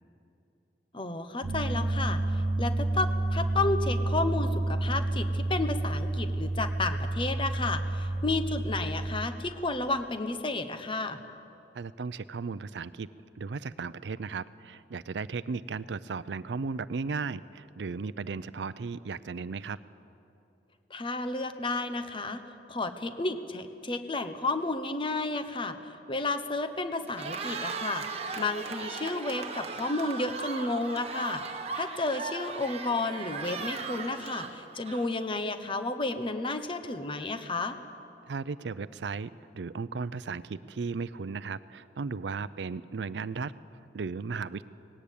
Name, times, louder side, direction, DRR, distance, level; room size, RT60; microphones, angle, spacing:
voice 1, 0.9-11.2 20.9-22.4 22.7-37.8, left 2 dB, 30° left, 9 dB, 1.0 m, -32 dB
sound 1, 1.4-9.3, right 2 dB, 60° right, 1.1 m, -30 dB
voice 2, 11.7-13.1 13.4-19.8 38.3-44.6, right 4 dB, 80° right, 16 dB, 0.5 m, -36 dB
Cheering, 27.0-35.3, right 4 dB, 35° right, 1.3 m, -37 dB
19.0 x 17.5 x 8.5 m, 2.8 s
head